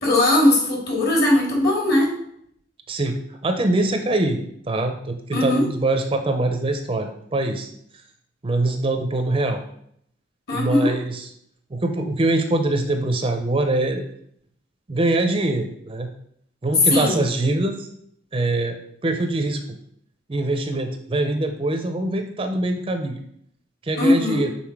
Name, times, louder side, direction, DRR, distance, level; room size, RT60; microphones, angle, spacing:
voice 1, 0.0-2.1 5.3-5.6 10.5-10.9 16.9-17.2 24.0-24.4, left 1 dB, 50° left, -1 dB, 2.0 m, -19 dB
voice 2, 2.9-4.4 4.7-7.7 8.4-9.6 10.5-11.3 11.7-14.0 14.9-16.1 16.6-17.9 18.3-18.8 19.0-19.6 20.3-23.2 23.8-24.5, right 2 dB, 25° right, 6 dB, 0.5 m, -23 dB
5.7 x 4.0 x 4.6 m, 0.69 s
head